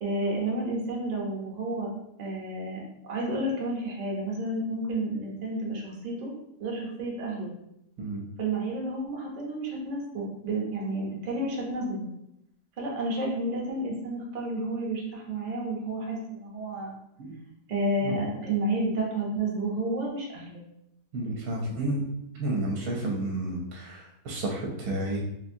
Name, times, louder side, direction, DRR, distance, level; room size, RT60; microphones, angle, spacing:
voice 1, 0.0-1.9 2.2-6.3 6.6-7.5 8.4-12.1 12.8-16.9 17.7-20.6, right 1 dB, 40° right, -2 dB, 0.7 m, -31 dB
voice 2, 21.1-22.0 22.4-25.2, right 1 dB, 75° right, -2 dB, 1.1 m, -31 dB
3.4 x 2.7 x 2.5 m, 0.81 s
omnidirectional pair, 1.6 m